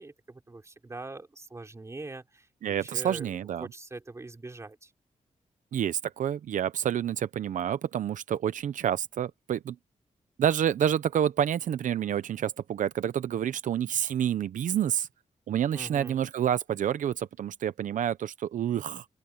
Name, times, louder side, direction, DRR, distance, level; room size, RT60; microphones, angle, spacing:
voice 1, 0.0-3.3 3.6-4.9 15.7-16.2, right 2 dB, 20° right, 3.3 m, -43 dB
voice 2, 2.6-3.7 5.7-9.8 10.4-15.1 15.5-19.0, right 10 dB, 85° right, 0.7 m, -28 dB
open air
wide cardioid pair, 130°, 13 cm